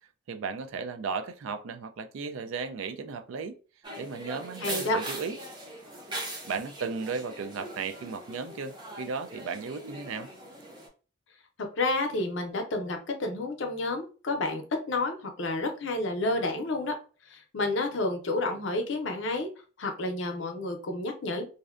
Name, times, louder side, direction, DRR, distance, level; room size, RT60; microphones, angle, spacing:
voice 1, 0.3-3.6 4.0-5.4 6.4-10.3, right 5 dB, 85° right, 0.3 m, -35 dB
sound 1, 3.8-10.9, right 1 dB, 20° right, 0.5 m, -41 dB
voice 2, 4.6-5.0 11.8-16.9 17.3-19.5 19.8-21.4, left 2 dB, 65° left, 0.6 m, -30 dB
2.5 x 2.1 x 2.4 m
head